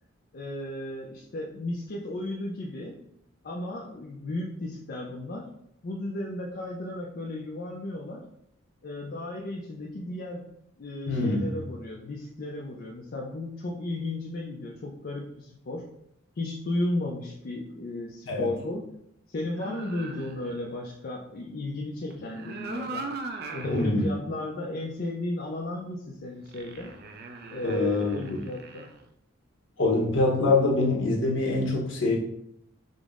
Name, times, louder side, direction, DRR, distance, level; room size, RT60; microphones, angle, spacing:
voice 1, 0.3-2.9 3.4-5.5 5.8-8.2 8.8-10.5 10.8-15.8 16.4-18.9 19.3-23.1 23.5-26.9 27.5-29.0, left 1 dB, 45° left, -2 dB, 0.4 m, -34 dB
voice 2, 11.1-11.4 18.3-18.5 23.7-24.1 27.6-28.4 29.8-32.2, left 2 dB, 65° left, -2 dB, 1.0 m, -24 dB
sound 1, 19.5-20.6 22.1-23.9 24.4-24.5 26.4-29.0, right 3 dB, 50° right, 0.4 m, -39 dB
5.1 x 2.0 x 3.6 m, 0.76 s
head